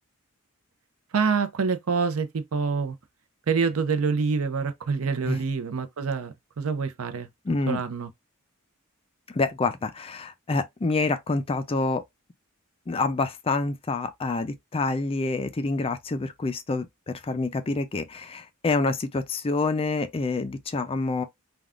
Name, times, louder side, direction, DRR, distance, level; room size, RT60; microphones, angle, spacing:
voice 1, 1.1-3.0 3.5-7.3 7.7-8.1, right 5 dB, 85° right, 0.5 m, -26 dB
voice 2, 7.4-7.8 9.3-12.0 12.9-21.2, left 3 dB, 25° left, 0.4 m, -27 dB
3.4 x 2.3 x 2.4 m
head